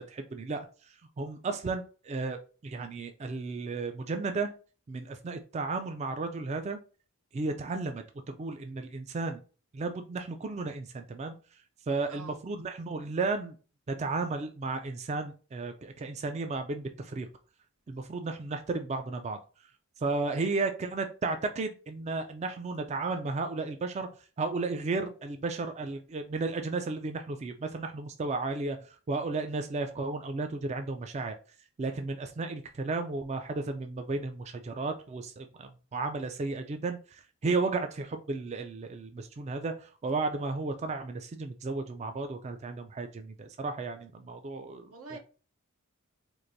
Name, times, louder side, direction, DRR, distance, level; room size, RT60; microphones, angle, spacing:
voice 1, 0.0-2.4 2.6-4.5 4.9-6.8 7.3-9.4 9.7-11.4 11.9-13.6 13.9-17.3 17.9-19.4 20.0-24.1 24.4-31.3 31.8-44.9, right 3 dB, 30° right, 0.3 m, -34 dB
voice 2, 12.1-12.4 20.3-20.7 38.0-38.1 44.8-45.2, right 3 dB, 90° right, 0.9 m, -47 dB
4.5 x 2.5 x 2.6 m
head